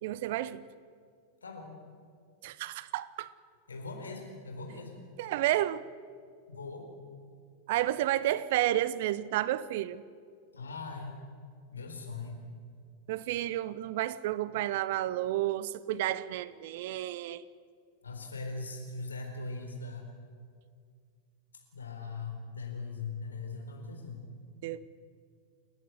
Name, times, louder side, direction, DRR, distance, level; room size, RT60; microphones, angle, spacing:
voice 1, 0.0-0.6 2.4-3.3 5.2-5.8 7.7-10.0 13.1-17.4 24.6-24.8, right 14 dB, 50° right, 0.7 m, -31 dB
voice 2, 1.4-1.8 3.7-4.9 6.5-6.9 10.5-11.1 11.7-12.4 18.0-20.1 21.7-24.3, left 3 dB, 75° left, 4.3 m, -40 dB
29.5 x 11.0 x 9.4 m
figure-of-eight pair, 90°, 0 cm